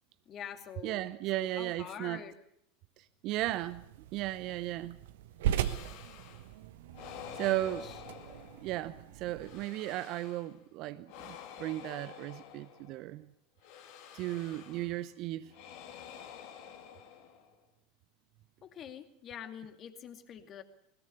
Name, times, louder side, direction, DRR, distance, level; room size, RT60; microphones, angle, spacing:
voice 1, 0.3-1.1 1.3-2.3 7.4-8.0 18.6-20.6, left 8 dB, 35° left, 2.4 m, -46 dB
voice 2, 0.8-2.2 3.0-3.8 4.1-5.0 7.4-7.9 8.3-13.3 14.1-15.5, right 16 dB, 50° right, 0.8 m, -36 dB
sound 1, 3.3-9.6, right 11 dB, 65° right, 1.2 m, -39 dB
sound 2, 5.5-6.5 6.9-8.9 9.4-10.6 11.1-13.1 13.6-15.0 15.5-17.6, left 9 dB, 55° left, 2.7 m, -49 dB
20.5 x 20.5 x 7.1 m
figure-of-eight pair, 80°, 0 cm